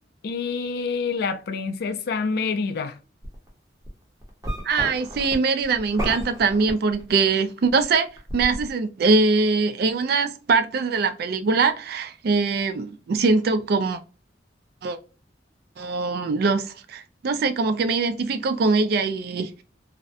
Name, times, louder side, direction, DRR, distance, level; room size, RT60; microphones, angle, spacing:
voice 1, 0.2-2.9, left 4 dB, 60° left, 0.3 m, -27 dB
sound 1, 3.2-3.5 3.9-7.4 7.7-8.7, equal, 20° right, 0.7 m, -32 dB
voice 2, 4.6-14.0 14.8-15.0 15.8-19.5, right 4 dB, 55° right, 0.3 m, -22 dB
2.6 x 2.1 x 2.4 m
head